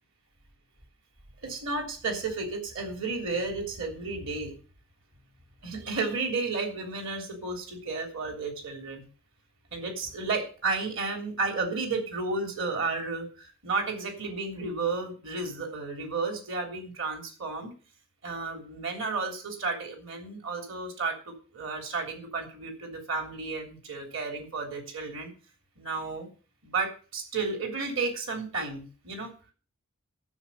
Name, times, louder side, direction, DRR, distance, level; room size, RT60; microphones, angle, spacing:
voice 1, 1.4-4.6 5.6-9.0 9.7-17.7 18.2-25.3 25.8-26.3 26.6-29.3, right 3 dB, 60° right, 3 dB, 3.3 m, -32 dB
13.5 x 6.2 x 7.0 m, 0.36 s
head